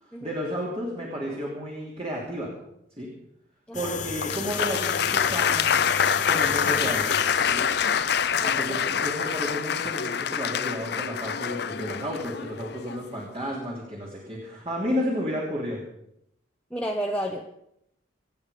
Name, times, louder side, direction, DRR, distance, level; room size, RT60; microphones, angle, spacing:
voice 1, 0.0-2.5 3.0-3.1 3.7-5.8 6.3-7.1 7.5-7.6 8.4-15.8, equal, 30° right, -3 dB, 3.1 m, -32 dB
sound 1, 3.7-9.5, left 6 dB, 40° left, 0.9 m, -35 dB
voice 2, 3.7-4.0 8.4-9.0 16.7-17.4, equal, 5° left, -1 dB, 1.1 m, -32 dB
Applause, 4.2-13.1, left 7 dB, 55° left, 0.6 m, -26 dB
26.5 x 8.9 x 5.2 m, 0.77 s
head